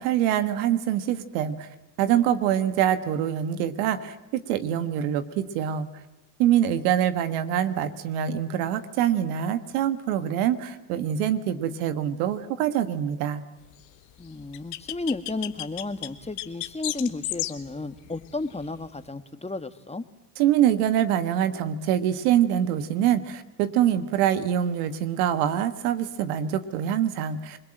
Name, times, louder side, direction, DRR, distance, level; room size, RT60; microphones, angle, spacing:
voice 1, 0.0-1.7 2.0-5.9 6.4-13.4 20.4-27.6, right 10 dB, 80° right, 11 dB, 1.6 m, -24 dB
sound 1, 14.2-19.0, left 16 dB, 80° left, 1.5 m, -33 dB
voice 2, 14.2-20.0, left 3 dB, 15° left, 10 dB, 1.8 m, -33 dB
28.0 x 21.0 x 8.9 m, 1.0 s
hypercardioid pair, 55°, 44 cm